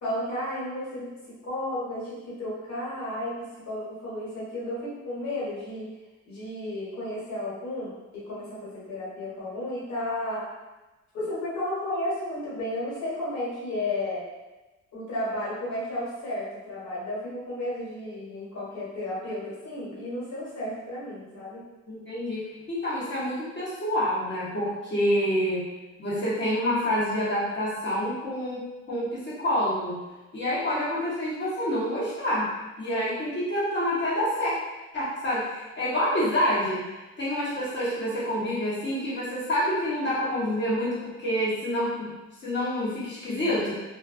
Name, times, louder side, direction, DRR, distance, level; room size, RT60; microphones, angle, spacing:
voice 1, 0.0-1.1 1.4-5.9 6.2-10.5 11.1-14.2 14.9-21.6, left 1 dB, 65° left, -8 dB, 1.4 m, -33 dB
voice 2, 21.9-25.6 26.0-30.0 30.3-32.5 32.8-34.5 34.9-36.8 37.2-42.1 42.4-43.7, equal, 40° left, -8 dB, 1.2 m, -27 dB
2.4 x 2.3 x 2.4 m, 1.1 s
cardioid pair, 90°, 30 cm